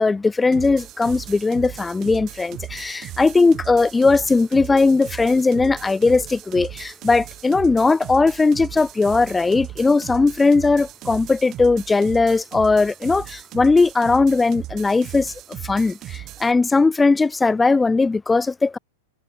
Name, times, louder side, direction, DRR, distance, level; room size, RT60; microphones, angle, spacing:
voice 1, 0.0-15.3 15.6-18.8, left 3 dB, 10° left, 0.5 m, -18 dB
sound 1, 0.5-16.5, right 15 dB, 30° right, 2.2 m, -37 dB
figure-of-eight pair, 100°, 0 cm